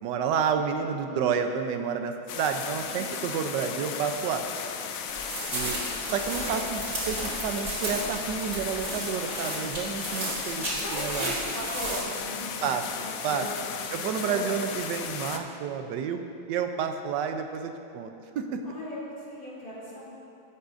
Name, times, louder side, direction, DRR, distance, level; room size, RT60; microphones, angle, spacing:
voice 1, 0.0-4.4 5.5-5.7 6.1-10.6 10.9-11.3 12.6-12.8 13.2-13.5 13.9-16.2 16.5-18.6, right 7 dB, 70° right, 6 dB, 1.3 m, -30 dB
sound 1, 2.3-15.4, left 7 dB, 80° left, 0.7 m, -36 dB
sound 2, 5.1-12.0, right 1 dB, 45° right, 3.1 m, -34 dB
voice 2, 10.8-12.7 13.0-14.5 18.6-20.2, equal, 45° left, -8 dB, 3.1 m, -38 dB
17.0 x 8.2 x 2.6 m, 2.7 s
omnidirectional pair, 2.1 m